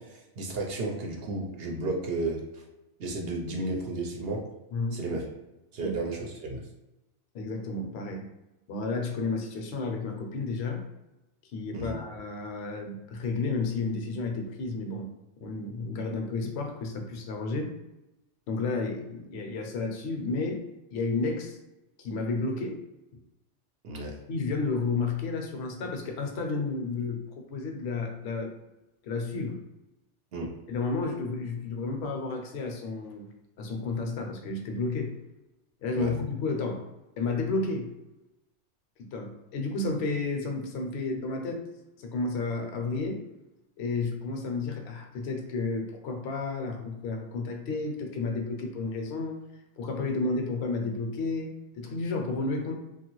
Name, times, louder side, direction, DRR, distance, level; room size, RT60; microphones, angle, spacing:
voice 1, 0.0-2.7 3.0-4.4 4.9-5.2 5.7-6.6 11.7-11.9 23.8-24.1 30.3-30.5 35.9-36.1, right 2 dB, 60° right, 0 dB, 0.7 m, -33 dB
voice 2, 7.3-8.3 8.7-10.8 11.5-15.1 15.4-17.7 18.5-20.6 20.9-21.6 22.0-22.8 24.3-28.6 29.0-29.6 30.7-33.3 33.6-35.1 35.8-36.8 37.2-37.9 39.1-41.7 42.0-43.2 43.8-49.4 49.8-52.8, left 3 dB, 65° left, 3 dB, 0.8 m, -31 dB
3.0 x 2.3 x 3.0 m, 0.98 s
omnidirectional pair, 1.2 m